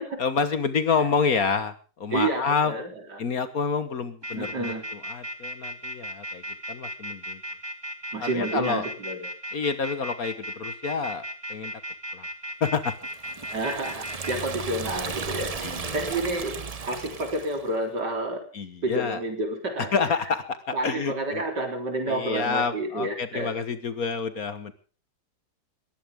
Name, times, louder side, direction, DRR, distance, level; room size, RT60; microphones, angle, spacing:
voice 1, 0.2-2.7 3.2-6.4 6.7-7.4 8.2-8.9 9.5-11.7 12.1-12.3 12.6-12.9 15.6-16.0 18.5-19.2 19.9-21.4 22.1-24.7, left 5 dB, 55° left, 12 dB, 1.7 m, -28 dB
voice 2, 2.1-3.2 4.3-4.8 8.1-9.3 13.5-15.5 15.9-18.4 18.8-19.9 20.7-23.5, right 2 dB, 65° right, 4 dB, 4.5 m, -29 dB
sound 1, 4.2-14.3, equal, 15° right, 2.0 m, -35 dB
Liquid, 13.1-17.7, right 5 dB, 40° right, 0.5 m, -35 dB
21.0 x 15.5 x 3.6 m, 0.37 s
omnidirectional pair, 2.0 m